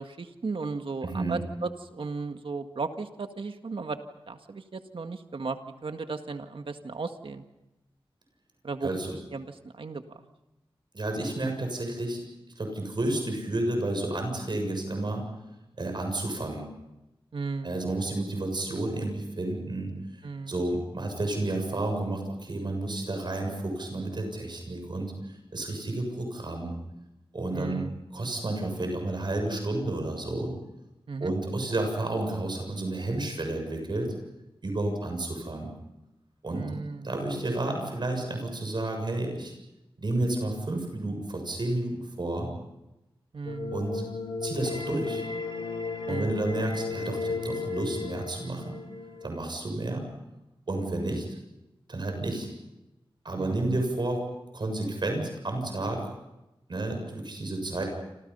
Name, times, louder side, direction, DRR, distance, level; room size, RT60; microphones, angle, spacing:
voice 1, 0.0-4.0 4.3-7.4 8.6-8.9 9.3-10.0 17.3-17.8 20.2-20.6 27.5-28.0 31.1-31.3 36.5-37.1 43.3-43.8 46.1-46.3 53.3-53.8, right 4 dB, 70° right, 7 dB, 1.9 m, -35 dB
voice 2, 1.0-1.4 8.8-9.1 10.9-12.2 12.5-15.2 15.8-16.6 17.6-19.9 20.5-26.8 27.3-27.8 28.1-30.5 31.2-34.1 34.6-35.7 36.4-36.7 37.0-39.5 40.0-42.5 43.7-44.0 44.4-45.2 46.1-48.7 49.2-50.1 50.7-51.2 51.9-52.5 53.2-54.2 54.5-56.1 56.7-57.8, right 2 dB, 55° right, 4 dB, 7.0 m, -31 dB
sound 1, 43.5-49.5, left 4 dB, 70° left, 3.1 m, -34 dB
29.5 x 27.5 x 5.6 m, 0.94 s
wide cardioid pair, 95°, 9 cm